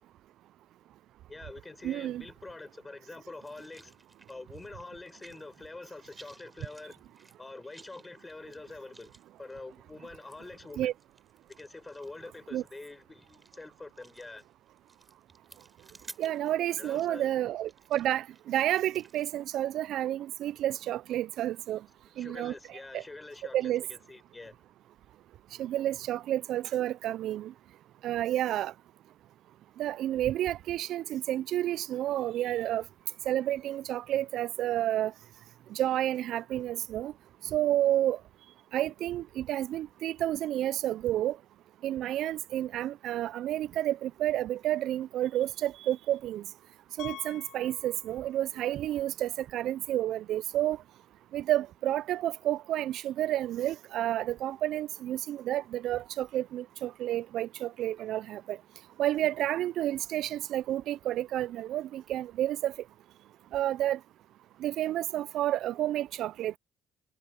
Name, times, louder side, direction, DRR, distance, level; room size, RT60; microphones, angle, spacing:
voice 1, 1.3-4.0 4.3-7.1 7.4-9.1 9.4-10.9 11.5-14.5 16.8-17.3 22.1-24.6, left 2 dB, 20° left, 5.8 m, -46 dB
voice 2, 1.8-2.2 10.8-10.9 12.5-12.6 16.2-21.8 22.2-23.0 23.5-23.8 25.6-27.5 28.0-28.7 29.8-32.8 33.3-35.1 35.7-37.1 37.4-38.2 38.7-41.4 41.8-46.4 47.0-50.8 51.3-58.6 59.0-62.7 63.5-64.0 64.6-66.6, right 13 dB, 70° right, 0.3 m, -30 dB
sound 1, 3.4-5.7 5.9-19.3, right 2 dB, 15° right, 5.0 m, -56 dB
Piano, 47.0-48.6 48.9-49.0 49.6-49.7 50.0-50.1 52.1-52.2, left 14 dB, 75° left, 8.0 m, -47 dB
supercardioid pair, 80°, 0 cm